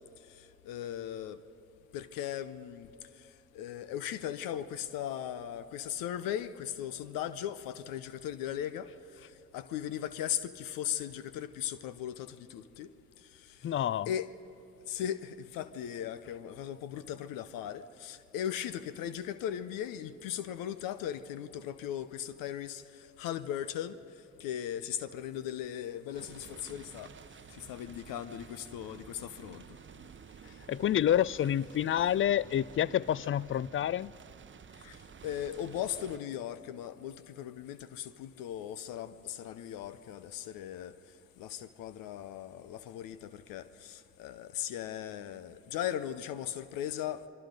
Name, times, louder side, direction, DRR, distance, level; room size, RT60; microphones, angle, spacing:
voice 1, 0.7-1.4 1.9-2.9 3.5-8.9 9.5-12.9 13.4-13.6 14.1-14.3 14.9-24.0 24.4-27.1 27.5-29.6 34.8-35.0 35.2-41.0 41.4-47.2, left 10 dB, 75° left, 0.7 m, -38 dB
voice 2, 13.6-14.1 30.5-34.1, left 10 dB, 35° left, 0.5 m, -28 dB
sound 1, 26.1-36.2, right 6 dB, 35° right, 0.8 m, -52 dB
27.0 x 23.0 x 5.2 m
hypercardioid pair, 40°, 34 cm